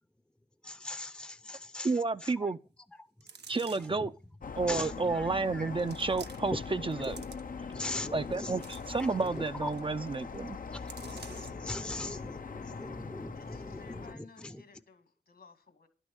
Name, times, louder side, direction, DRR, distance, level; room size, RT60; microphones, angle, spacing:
voice 1, 0.6-1.9 2.2-2.5 3.7-4.1 4.6-5.3 5.5-5.7 7.7-8.6 9.6-9.7 10.7-14.6, left 2 dB, 5° left, 0.7 m, -40 dB
voice 2, 1.8-2.6 3.5-4.1 4.6-7.2 8.1-10.6, right 3 dB, 30° right, 0.5 m, -31 dB
sound 1, 3.2-4.1 4.8-4.9 5.8-6.6 6.9-7.7 8.2-9.4 9.7-9.9 10.1-10.4 10.9-11.7 12.2-12.3, right 6 dB, 80° right, 0.8 m, -51 dB
sound 2, 4.4-14.1, left 5 dB, 55° left, 0.7 m, -42 dB
voice 3, 13.3-15.9, left 4 dB, 70° left, 2.6 m, -56 dB
11.5 x 6.3 x 8.0 m
cardioid pair, 55°, 17 cm